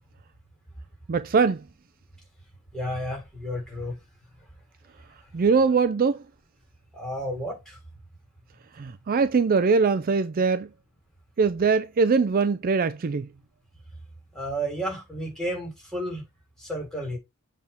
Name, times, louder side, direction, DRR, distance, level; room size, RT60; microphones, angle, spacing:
voice 1, 1.1-1.6 5.3-6.2 8.7-10.7 11.4-13.3, right 5 dB, 40° right, 0.4 m, -22 dB
voice 2, 2.7-4.0 6.9-7.8 14.3-16.3 16.6-17.2, equal, 5° left, 3.6 m, -32 dB
7.5 x 3.6 x 5.6 m
head